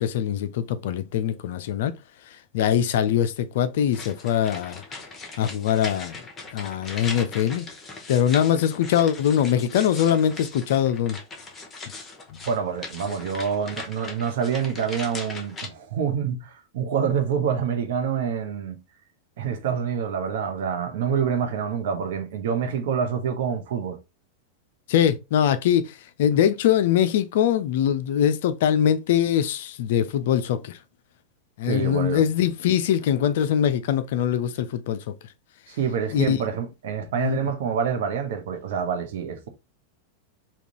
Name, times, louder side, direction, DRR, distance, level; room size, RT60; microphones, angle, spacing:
voice 1, 0.0-1.9 2.5-4.8 5.4-6.2 6.5-7.7 8.1-11.2 12.3-12.4 24.9-30.8 31.6-35.0 36.1-36.4 37.2-37.4, left 9 dB, 55° left, 0.4 m, -22 dB
sound 1, 3.9-15.7, left 3 dB, 15° left, 0.8 m, -39 dB
voice 2, 12.5-18.8 19.4-24.0 31.6-32.3 35.7-39.5, right 7 dB, 55° right, 0.7 m, -27 dB
3.6 x 2.3 x 3.0 m
figure-of-eight pair, 90°, 0 cm